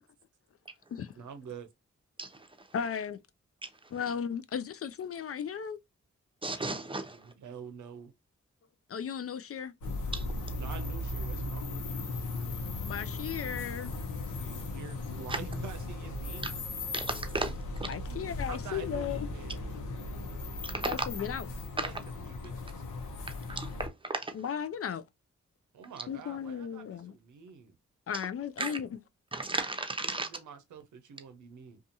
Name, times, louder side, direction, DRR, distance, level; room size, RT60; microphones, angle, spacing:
voice 1, 1.2-1.7 7.1-8.1 10.6-12.2 14.3-16.9 18.1-19.7 21.7-22.8 25.7-27.8 30.0-31.8, right 6 dB, 85° right, 0.6 m, -47 dB
voice 2, 2.7-3.2 3.9-5.8 8.9-9.7 12.8-14.0 17.9-19.3 20.8-21.5 24.3-25.0 26.1-27.1 28.1-29.0, left 8 dB, 50° left, 0.4 m, -35 dB
voice 3, 6.4-7.3 10.1-10.3 15.3-15.4 16.9-17.9 20.6-21.0 21.8-21.9 23.5-24.3 28.6-28.8 29.3-30.3, right 2 dB, 15° right, 0.7 m, -34 dB
sound 1, 9.8-23.9, left 2 dB, 90° left, 0.8 m, -37 dB
2.6 x 2.4 x 2.6 m
supercardioid pair, 40°, 30 cm